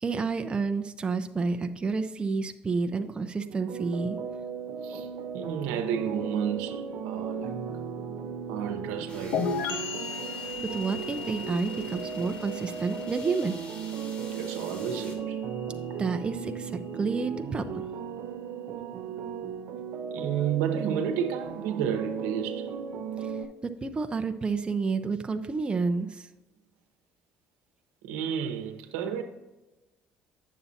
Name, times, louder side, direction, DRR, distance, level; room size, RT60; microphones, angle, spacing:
voice 1, 0.0-4.2 10.6-13.6 16.0-17.8 23.2-23.3 23.6-26.3, right 4 dB, 25° right, 0.5 m, -30 dB
sound 1, 3.5-23.4, right 6 dB, 65° right, 0.6 m, -36 dB
voice 2, 4.8-7.6 8.5-9.8 14.3-15.4 20.1-22.7 28.0-29.2, right 8 dB, 90° right, 0.9 m, -32 dB
sound 2, 9.1-15.2, left 2 dB, 40° left, 2.4 m, -47 dB
sound 3, 9.3-16.9, left 5 dB, 85° left, 0.7 m, -37 dB
8.3 x 7.0 x 2.8 m
supercardioid pair, 85°, 4 cm